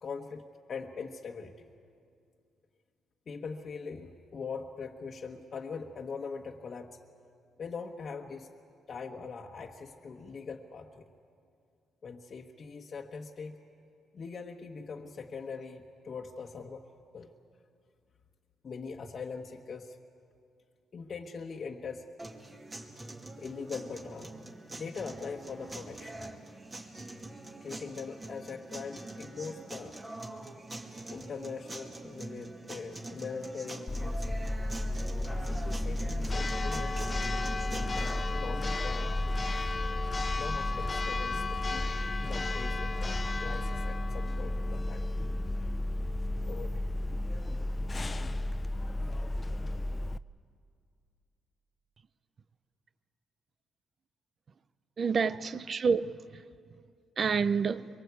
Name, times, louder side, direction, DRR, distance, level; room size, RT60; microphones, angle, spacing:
voice 1, 0.0-1.6 3.3-7.0 7.6-8.5 8.9-11.1 12.0-13.6 14.1-16.8 17.1-17.3 18.6-20.0 20.9-22.1 23.0-23.1 23.4-24.4 24.7-26.3 27.6-30.0 31.1-34.5 35.4-37.0 37.7-39.2 40.3-41.9 42.3-45.1 45.6-45.8 46.5-46.9, left 5 dB, 45° left, 1.4 m, -42 dB
sound 1, 22.2-38.2, right 2 dB, 25° right, 2.4 m, -43 dB
Church bell, 33.9-50.2, left 2 dB, 25° left, 0.5 m, -32 dB
voice 2, 55.0-56.4 57.2-57.9, right 5 dB, 45° right, 0.7 m, -28 dB
24.0 x 23.5 x 8.4 m
cardioid pair, 90°, 0 cm